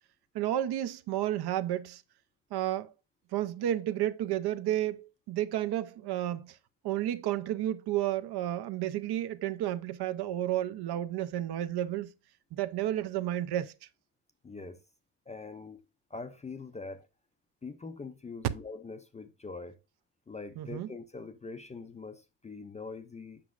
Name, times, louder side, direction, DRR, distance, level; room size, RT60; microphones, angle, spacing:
voice 1, 0.3-2.0 2.5-2.9 3.3-6.6 6.8-12.1 12.5-13.7 20.6-20.9, right 12 dB, 65° right, 0.6 m, -31 dB
voice 2, 14.4-14.8 15.3-15.8 16.1-17.1 17.6-19.8 20.3-23.4, left 4 dB, 20° left, 0.3 m, -43 dB
7.6 x 6.1 x 2.4 m
cardioid pair, 150°, 42 cm